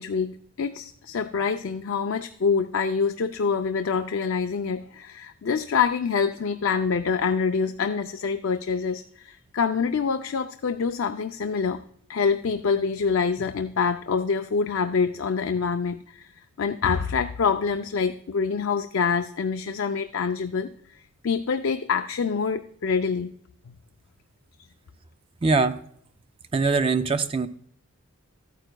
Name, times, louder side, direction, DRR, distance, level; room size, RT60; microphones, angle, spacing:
voice 1, 0.0-11.8 12.1-16.3 16.6-20.7 21.2-23.3 23.7-23.8, left 5 dB, 60° left, 7 dB, 0.4 m, -26 dB
voice 2, 25.4-25.8 26.5-27.5, right 4 dB, 25° right, 11 dB, 0.4 m, -22 dB
13.5 x 9.1 x 2.2 m, 0.66 s
head